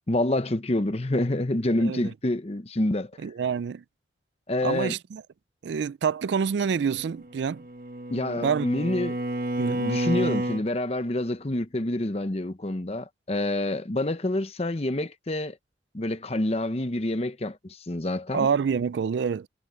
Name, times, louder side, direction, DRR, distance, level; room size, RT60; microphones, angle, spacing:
voice 1, 0.1-3.1 4.5-5.0 8.1-9.2 9.8-15.6 15.9-18.5, left 1 dB, 35° left, 0.9 m, -27 dB
voice 2, 1.8-2.1 3.2-3.8 4.6-5.2 5.6-7.6 8.4-8.7 9.6-9.8 18.3-19.5, right 6 dB, 70° right, 0.3 m, -27 dB
Bowed string instrument, 7.3-10.7, right 1 dB, 50° right, 1.5 m, -29 dB
head